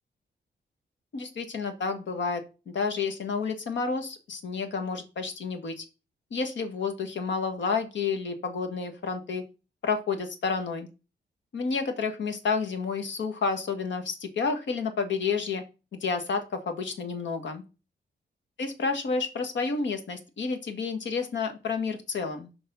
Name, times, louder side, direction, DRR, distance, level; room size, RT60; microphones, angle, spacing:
voice 1, 1.1-2.4 2.7-5.8 6.3-9.4 9.8-10.9 11.5-15.6 15.9-17.6 18.6-22.5, left 5 dB, 85° left, 7 dB, 1.6 m, -30 dB
6.9 x 5.4 x 5.5 m, 0.32 s
wide cardioid pair, 155°, 19 cm